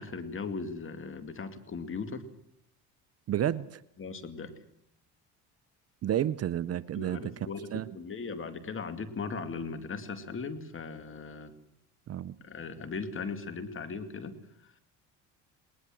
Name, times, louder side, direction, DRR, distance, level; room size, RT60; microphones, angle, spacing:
voice 1, 0.0-2.3 4.0-4.6 6.9-11.5 12.4-14.7, left 4 dB, 35° left, 10 dB, 2.5 m, -38 dB
voice 2, 3.3-3.8 6.0-7.3 7.7-7.9 12.1-12.3, right 11 dB, 40° right, 16 dB, 0.7 m, -30 dB
19.5 x 19.5 x 7.7 m, 0.75 s
cardioid pair, 105°, 37 cm